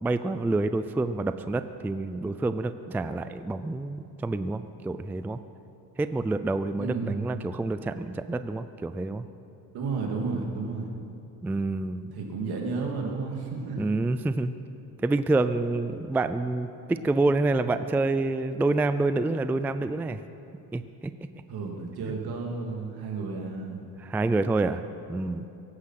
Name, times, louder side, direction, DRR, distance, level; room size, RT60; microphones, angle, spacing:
voice 1, 0.0-5.4 6.0-9.2 11.4-12.1 13.8-14.5 15.0-20.2 20.7-21.1 24.0-24.8 25.1-25.4, right 2 dB, 5° right, 11 dB, 0.3 m, -27 dB
voice 2, 6.8-7.3 9.7-10.9 12.1-13.9 21.5-23.9, right 4 dB, 70° right, 0 dB, 2.8 m, -32 dB
22.5 x 9.8 x 5.9 m, 2.7 s
cardioid pair, 120°, 39 cm